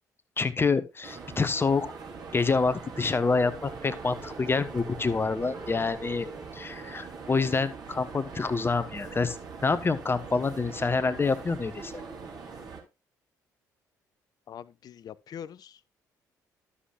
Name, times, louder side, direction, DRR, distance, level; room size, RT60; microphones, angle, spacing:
voice 1, 0.4-1.9 2.3-6.3 6.5-9.4 9.6-11.9, left 4 dB, 25° left, 1.1 m, -27 dB
sound 1, 1.0-12.8, right 5 dB, 45° right, 3.4 m, -42 dB
sound 2, 3.2-7.6, right 3 dB, 10° right, 1.4 m, -46 dB
voice 2, 14.5-16.0, left 9 dB, 45° left, 0.5 m, -44 dB
13.0 x 7.2 x 2.4 m
figure-of-eight pair, 45°, 9 cm